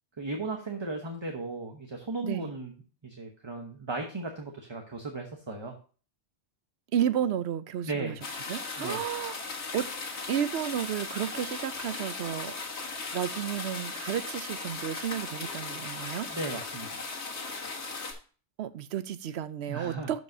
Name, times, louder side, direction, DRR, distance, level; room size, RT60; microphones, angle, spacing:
voice 1, 0.2-2.7 3.0-5.7 7.8-8.2 8.8-9.0 16.3-17.0 19.7-20.1, right 3 dB, 25° right, 0.9 m, -36 dB
voice 2, 6.9-8.2 8.5-9.4 9.7-9.9 10.3-12.5 13.1-16.3 18.6-20.2, right 10 dB, 75° right, 0.8 m, -32 dB
sound 1, 8.2-18.1, left 4 dB, 75° left, 1.8 m, -37 dB
12.5 x 4.8 x 2.6 m
omnidirectional pair, 1.1 m